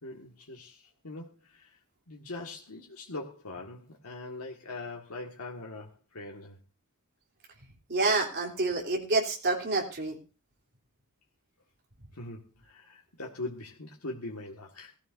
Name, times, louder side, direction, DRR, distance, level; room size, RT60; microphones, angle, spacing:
voice 1, 0.0-1.3 1.5-1.7 2.1-6.6 12.2-14.9, left 2 dB, 75° left, -1 dB, 1.8 m, -41 dB
voice 2, 7.9-10.2, right 3 dB, 50° right, 0 dB, 3.4 m, -28 dB
18.5 x 14.0 x 2.7 m, 0.32 s
head